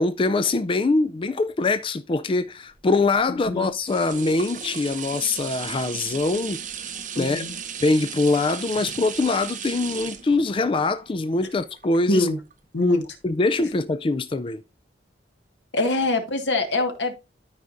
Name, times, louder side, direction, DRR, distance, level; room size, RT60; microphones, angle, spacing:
voice 1, 0.0-7.4 7.8-12.3 13.2-14.6, left 3 dB, 30° left, 0.4 m, -23 dB
sound 1, 2.8-12.5 13.0-13.1, right 8 dB, 45° right, 0.9 m, -36 dB
voice 2, 7.1-7.5 12.1-12.4 12.7-13.2 15.7-17.1, left 2 dB, 80° left, 1.7 m, -23 dB
13.0 x 5.0 x 2.6 m
head